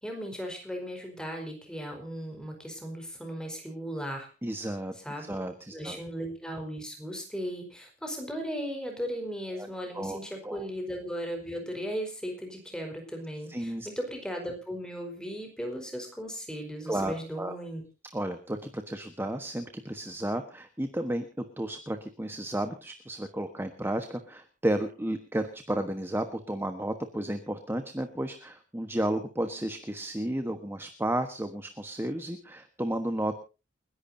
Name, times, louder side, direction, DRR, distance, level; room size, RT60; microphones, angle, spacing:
voice 1, 0.0-4.3 5.0-5.3 5.7-17.8, equal, 5° left, 3 dB, 4.6 m, -37 dB
voice 2, 4.4-4.9 5.2-6.0 9.6-9.7 9.9-10.2 10.4-10.7 13.5-13.9 16.9-17.5 18.1-33.3, right 1 dB, 10° right, 7 dB, 1.2 m, -32 dB
29.5 x 11.0 x 2.7 m, 0.32 s
head